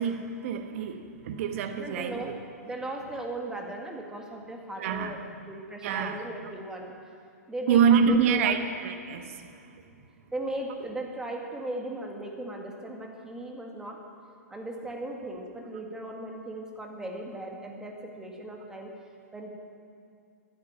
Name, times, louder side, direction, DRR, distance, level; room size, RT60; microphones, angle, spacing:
voice 1, 0.0-2.3 4.8-5.1 5.8-6.2 7.7-9.5, right 6 dB, 55° right, 7 dB, 1.4 m, -26 dB
voice 2, 1.8-2.4 2.6-5.2 5.4-6.9 7.5-8.5 10.3-14.0 14.5-18.9 19.3-19.5, right 1 dB, 5° right, 0 dB, 2.0 m, -37 dB
12.5 x 9.7 x 8.9 m, 2.5 s
hypercardioid pair, 125°, 9 cm